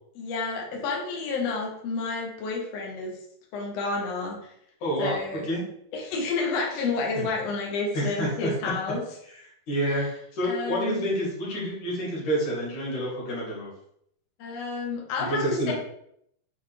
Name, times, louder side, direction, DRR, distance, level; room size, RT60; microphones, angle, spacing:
voice 1, 0.1-3.1 3.5-4.5 5.0-5.5 5.9-9.0 9.9-10.1 10.4-11.1 14.4-15.7, left 3 dB, 85° left, 0 dB, 1.4 m, -30 dB
voice 2, 4.8-5.2 5.5-5.6 7.2-7.3 7.9-8.5 9.7-10.1 10.3-13.7 15.3-15.7, equal, 55° left, -4 dB, 3.2 m, -28 dB
7.0 x 4.0 x 3.4 m, 0.71 s
omnidirectional pair, 4.7 m